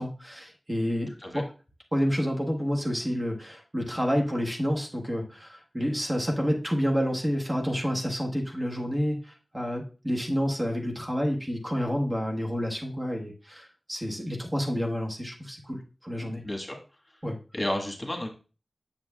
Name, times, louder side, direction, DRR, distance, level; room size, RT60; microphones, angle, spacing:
voice 1, 0.0-1.5 1.9-16.4 17.2-17.4, equal, 25° right, 0 dB, 1.1 m, -29 dB
voice 2, 16.4-16.8 17.5-18.3, left 1 dB, 20° left, 1 dB, 1.5 m, -31 dB
7.6 x 6.9 x 2.3 m, 0.34 s
wide cardioid pair, 65°, 0 cm